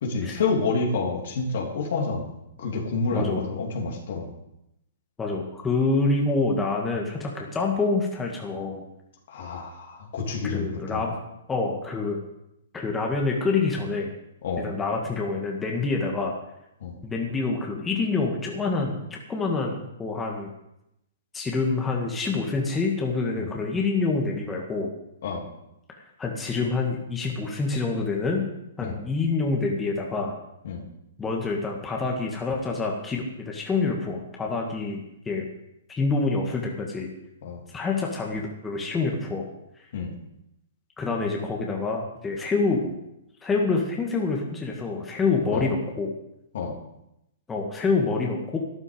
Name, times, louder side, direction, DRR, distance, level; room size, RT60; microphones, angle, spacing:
voice 1, 0.0-2.3 2.6-4.3 9.3-11.0 14.4-14.7 16.8-16.9 23.4-23.5 25.2-25.4 28.8-29.0 30.6-30.8 37.4-37.6 39.9-40.1 45.5-45.7 46.5-46.7, left 4 dB, 60° left, 0 dB, 3.2 m, -28 dB
voice 2, 3.1-3.4 5.2-8.8 10.5-11.2 11.5-12.2 12.7-14.1 14.6-16.3 17.0-19.0 19.3-20.5 21.3-24.9 26.2-28.5 28.8-30.3 31.2-35.5 35.9-37.1 37.7-39.4 41.0-42.9 43.4-46.1 47.5-48.6, left 3 dB, 15° left, 0 dB, 2.0 m, -26 dB
13.0 x 11.0 x 5.3 m, 0.84 s
figure-of-eight pair, 120°, 0 cm